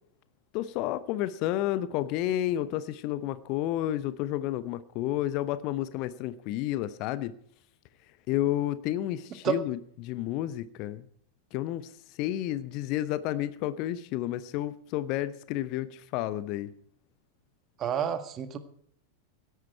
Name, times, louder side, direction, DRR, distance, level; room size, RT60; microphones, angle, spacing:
voice 1, 0.5-7.3 8.3-11.0 11.5-11.9 12.2-16.7, left 13 dB, 40° left, 0.9 m, -31 dB
voice 2, 17.8-18.6, right 8 dB, 30° right, 1.8 m, -29 dB
17.0 x 13.0 x 4.5 m
figure-of-eight pair, 90°, 0 cm